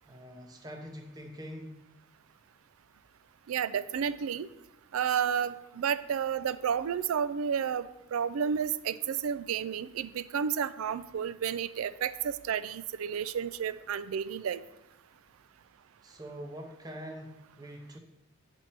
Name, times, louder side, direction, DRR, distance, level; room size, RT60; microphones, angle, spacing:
voice 1, 0.1-1.9 16.0-18.0, equal, 20° right, 2 dB, 0.6 m, -44 dB
voice 2, 3.5-4.5 4.9-14.6, right 7 dB, 80° right, 15 dB, 0.4 m, -31 dB
9.3 x 4.4 x 4.5 m, 0.93 s
head